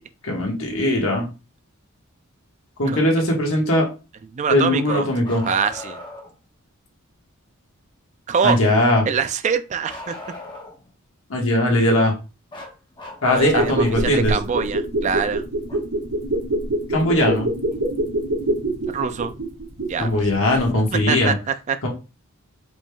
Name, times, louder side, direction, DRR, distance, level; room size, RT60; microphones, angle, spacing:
voice 1, 0.2-1.3 2.8-3.9 4.5-5.4 8.4-9.0 11.3-12.1 13.2-14.3 16.9-17.5 20.0-21.3 21.8-21.9, left 1 dB, 70° left, -1 dB, 1.4 m, -19 dB
voice 2, 4.3-5.1 5.5-6.0 8.3-8.6 9.1-10.2 13.3-15.4 18.9-19.4 19.9-20.1 21.1-21.8, right 6 dB, 35° right, 11 dB, 0.3 m, -24 dB
Bark, 5.2-6.3 9.9-10.9 12.5-14.0 15.7-15.8 17.7-17.8 18.9-19.0, left 2 dB, 20° left, 1.0 m, -38 dB
sound 1, 13.4-20.3 20.5-20.6, right 1 dB, 80° right, 1.6 m, -25 dB
5.0 x 3.4 x 2.3 m, 0.30 s
head